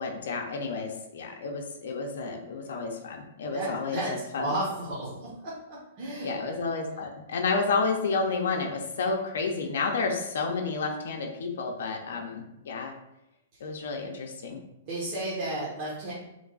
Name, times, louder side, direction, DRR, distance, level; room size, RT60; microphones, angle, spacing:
voice 1, 0.0-4.5 6.2-12.9 13.6-14.6, left 4 dB, 75° left, 2 dB, 0.6 m, -31 dB
voice 2, 3.5-6.3 14.9-16.1, right 1 dB, 35° right, -8 dB, 0.9 m, -33 dB
3.2 x 2.3 x 3.9 m, 0.90 s
hypercardioid pair, 155°, 0 cm